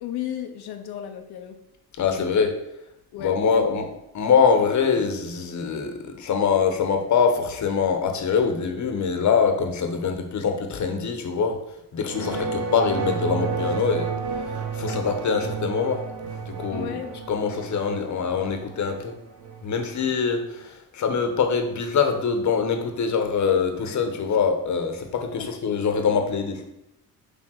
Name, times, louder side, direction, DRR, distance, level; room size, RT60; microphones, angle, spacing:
voice 1, 0.0-1.6 3.1-3.7 12.2-12.5 16.7-17.1 25.4-25.5, left 10 dB, 85° left, 4 dB, 1.0 m, -34 dB
voice 2, 2.0-2.6 3.2-3.9 4.1-11.6 11.9-14.1 14.4-16.0 16.4-17.0 17.3-19.2 19.6-26.6, left 6 dB, 50° left, 6 dB, 1.2 m, -24 dB
sound 1, 12.0-20.7, right 5 dB, 85° right, 1.3 m, -32 dB
7.6 x 3.7 x 6.4 m, 0.86 s
cardioid pair, 140°, 38 cm